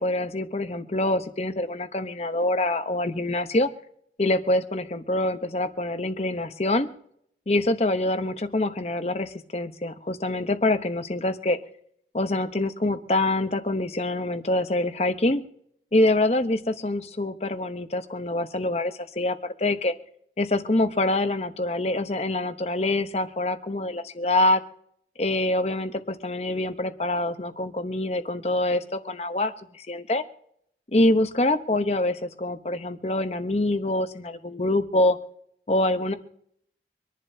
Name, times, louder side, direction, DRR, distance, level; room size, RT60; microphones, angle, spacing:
voice 1, 0.0-3.7 4.2-6.9 7.5-11.6 12.1-15.4 15.9-19.9 20.4-24.6 25.2-30.2 30.9-35.2 35.7-36.1, left 1 dB, 35° left, 10 dB, 0.9 m, -25 dB
25.5 x 11.0 x 2.8 m, 0.68 s
head